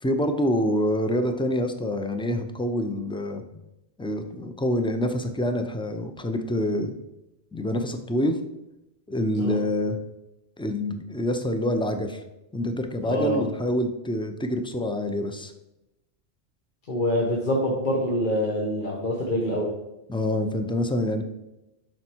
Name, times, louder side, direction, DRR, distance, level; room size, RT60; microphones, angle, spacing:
voice 1, 0.0-3.4 4.0-6.9 7.5-8.4 9.1-10.0 10.6-12.2 12.5-15.5 20.1-21.2, left 1 dB, 5° left, 7 dB, 0.5 m, -26 dB
voice 2, 13.1-13.5 16.9-19.7, equal, 50° left, -2 dB, 1.3 m, -25 dB
7.8 x 5.9 x 4.5 m, 0.94 s
omnidirectional pair, 1.1 m